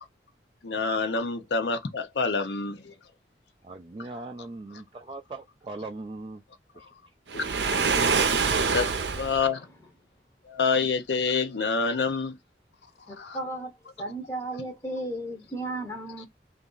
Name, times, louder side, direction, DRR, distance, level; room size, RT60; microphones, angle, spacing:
voice 1, 0.6-2.9 6.8-6.9 7.3-7.4 8.7-9.6 10.5-12.3 13.2-13.4, left 4 dB, 70° left, 0.6 m, -27 dB
voice 2, 3.6-6.4 6.8-6.9, right 2 dB, 30° right, 0.3 m, -39 dB
Waves surf, 7.3-9.4, right 5 dB, 75° right, 0.6 m, -25 dB
voice 3, 13.1-16.3, right 1 dB, 15° left, 0.7 m, -35 dB
3.0 x 2.6 x 3.8 m
head